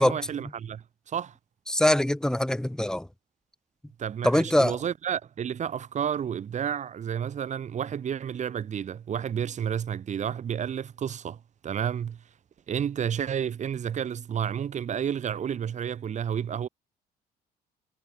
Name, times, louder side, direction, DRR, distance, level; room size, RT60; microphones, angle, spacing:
voice 1, 0.0-1.3 4.0-12.2 12.7-16.7, right 8 dB, 45° right, 2.9 m, -31 dB
voice 2, 1.7-3.1 4.2-4.8, left 1 dB, 5° left, 1.0 m, -23 dB
cardioid pair, 110°, 17 cm